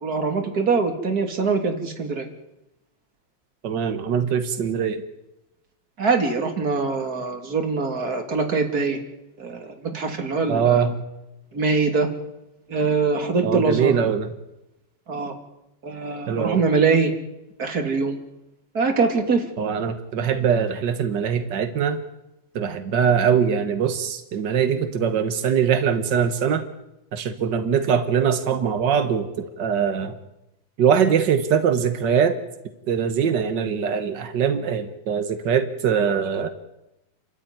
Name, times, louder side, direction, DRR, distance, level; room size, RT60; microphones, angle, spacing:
voice 1, 0.0-2.3 6.0-9.0 9.4-10.8 11.5-12.1 12.7-13.9 15.1-15.3 15.8-17.1 17.6-18.2 18.7-19.4, right 4 dB, 30° right, 4 dB, 2.9 m, -23 dB
voice 2, 3.6-5.0 10.5-11.0 13.4-14.3 16.3-16.6 19.6-22.0 22.5-26.6 27.1-30.1 30.8-32.4 32.9-36.5, right 7 dB, 70° right, 8 dB, 1.0 m, -22 dB
29.0 x 13.5 x 9.7 m, 0.91 s
omnidirectional pair, 4.0 m